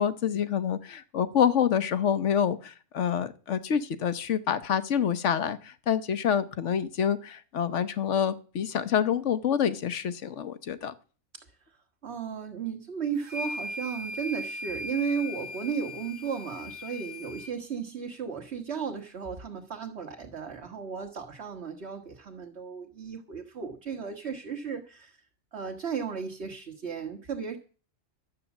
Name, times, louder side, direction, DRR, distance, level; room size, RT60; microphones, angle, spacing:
voice 1, 0.0-10.9, left 8 dB, 65° left, 14 dB, 1.2 m, -27 dB
voice 2, 12.0-25.2 25.5-27.6, right 6 dB, 55° right, 4 dB, 1.7 m, -35 dB
sound 1, 13.2-17.5, left 2 dB, 35° right, 1.5 m, -38 dB
12.0 x 8.4 x 7.1 m, 0.39 s
omnidirectional pair, 1.4 m